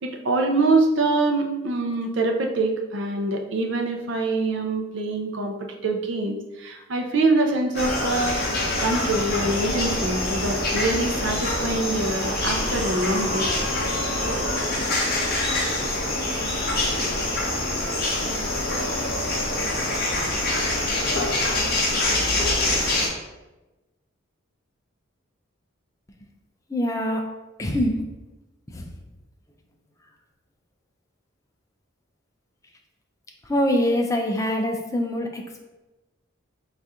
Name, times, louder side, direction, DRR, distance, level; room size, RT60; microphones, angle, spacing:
voice 1, 0.0-5.5 5.8-8.4 8.8-13.5, right 2 dB, 60° right, 3 dB, 0.5 m, -24 dB
sound 1, 7.7-23.1, left 1 dB, 50° left, 0.8 m, -25 dB
voice 2, 26.7-27.2 27.6-28.0 28.7-28.9 33.4-35.6, equal, 15° left, 2 dB, 0.4 m, -24 dB
4.1 x 2.4 x 3.5 m, 1.1 s
head